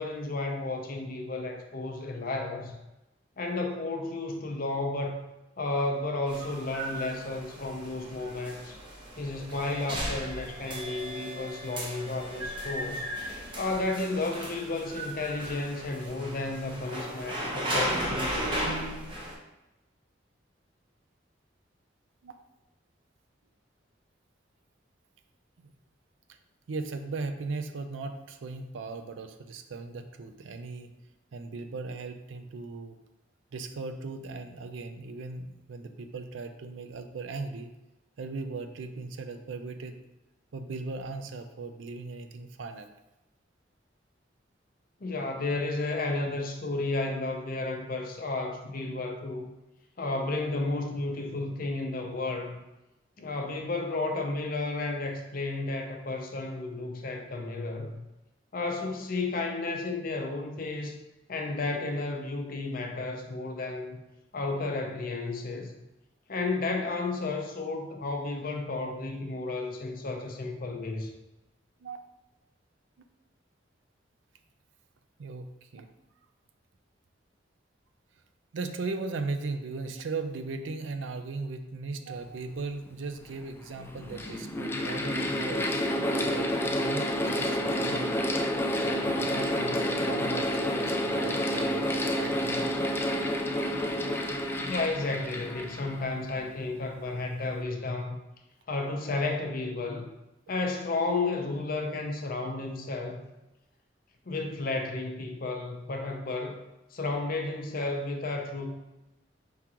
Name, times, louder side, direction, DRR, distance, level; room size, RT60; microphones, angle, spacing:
voice 1, 0.0-2.7 3.4-5.2 5.6-8.8 9.2-13.1 13.6-18.5 45.0-49.5 50.0-52.6 53.2-58.0 58.5-61.0 61.3-64.0 64.3-65.7 66.3-71.1 94.6-98.2 98.7-100.1 100.5-103.2 104.3-106.6 106.9-108.7, left 2 dB, 50° left, 3 dB, 0.6 m, -32 dB
sound 1, 6.3-19.3, right 1 dB, 25° right, 0.9 m, -36 dB
voice 2, 26.7-30.9 31.3-33.0 33.5-37.7 38.2-40.0 40.5-42.9 71.8-72.0 75.2-75.9 78.5-88.1 88.8-92.8, right 3 dB, 85° right, 8 dB, 0.4 m, -38 dB
Mechanical fan, 82.9-83.0 83.8-96.5, equal, 10° left, 0.3 m, -29 dB
4.7 x 3.6 x 2.9 m, 0.98 s
head